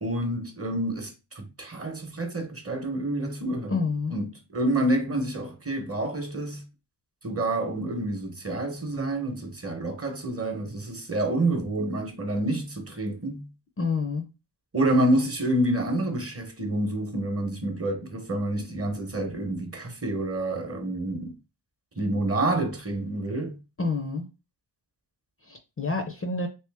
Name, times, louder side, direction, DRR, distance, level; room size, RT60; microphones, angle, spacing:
voice 1, 0.0-3.8 4.1-4.3 4.5-6.6 7.2-13.5 14.7-21.4 22.0-23.6, right 1 dB, 30° right, 0.9 m, -28 dB
voice 2, 3.7-4.2 13.8-14.3 23.8-24.3 25.5-26.5, left 4 dB, 30° left, 0.6 m, -28 dB
3.0 x 2.8 x 3.4 m
cardioid pair, 70°, 48 cm